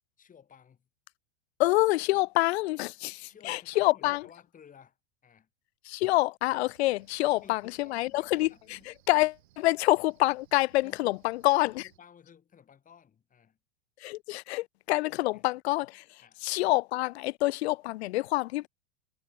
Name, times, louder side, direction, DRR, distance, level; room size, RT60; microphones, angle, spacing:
voice 1, 0.2-0.9 3.0-5.0 5.2-5.5 6.9-9.0 10.8-11.2 11.6-13.6 15.1-15.4 16.2-16.5, left 8 dB, 25° left, 6.4 m, -56 dB
voice 2, 1.6-3.2 3.4-4.2 5.9-8.8 9.1-11.8 14.0-16.0 16.4-18.7, left 19 dB, 70° left, 0.6 m, -27 dB
Cricket, 6.6-12.0, right 15 dB, 70° right, 3.7 m, -64 dB
hypercardioid pair, 110°, 34 cm